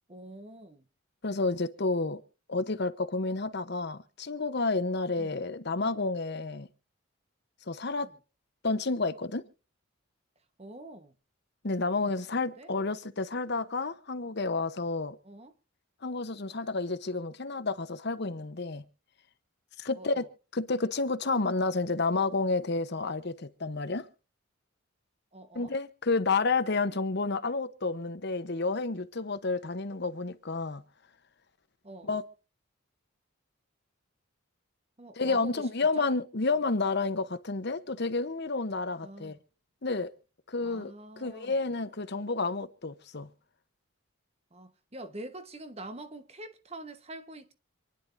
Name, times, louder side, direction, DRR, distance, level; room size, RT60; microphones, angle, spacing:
voice 1, 0.1-0.9 5.2-5.4 8.0-8.2 10.6-11.1 11.9-12.7 15.2-15.5 19.9-20.3 25.3-25.7 31.8-32.2 35.0-35.7 36.0-36.1 39.0-39.4 40.6-41.6 44.5-47.5, right 1 dB, 30° right, 1.2 m, -45 dB
voice 2, 1.2-2.2 2.5-6.7 7.7-8.1 8.6-9.4 11.6-15.2 16.0-18.8 19.8-20.2 20.5-24.1 25.5-30.8 32.0-32.2 35.1-39.4 39.8-40.1 40.5-43.3, left 3 dB, 50° left, 0.9 m, -30 dB
27.0 x 10.5 x 2.6 m
head